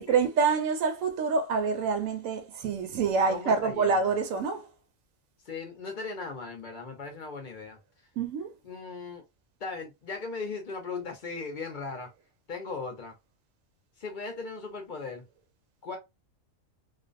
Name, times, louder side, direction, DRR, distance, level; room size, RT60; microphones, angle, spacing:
voice 1, 0.0-4.7 8.2-8.5, right 5 dB, 80° right, 1.0 m, -27 dB
voice 2, 3.3-4.1 5.4-7.8 8.6-9.2 9.6-12.1 12.5-13.2 14.0-15.2 15.8-16.0, left 4 dB, 50° left, 0.6 m, -38 dB
2.5 x 2.1 x 2.4 m
omnidirectional pair, 1.4 m